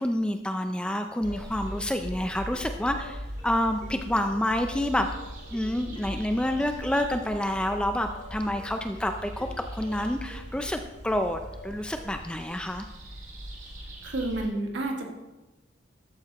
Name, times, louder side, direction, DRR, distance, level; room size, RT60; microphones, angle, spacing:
voice 1, 0.0-5.1 5.5-12.9, left 1 dB, 5° left, 6 dB, 0.4 m, -28 dB
sound 1, 1.2-12.4, left 1 dB, 25° left, 2.2 m, -49 dB
sound 2, 1.2-14.5, equal, 40° right, 2.0 m, -41 dB
voice 2, 14.0-15.1, right 2 dB, 65° right, 1 dB, 1.6 m, -30 dB
13.0 x 9.0 x 2.9 m, 1.1 s
head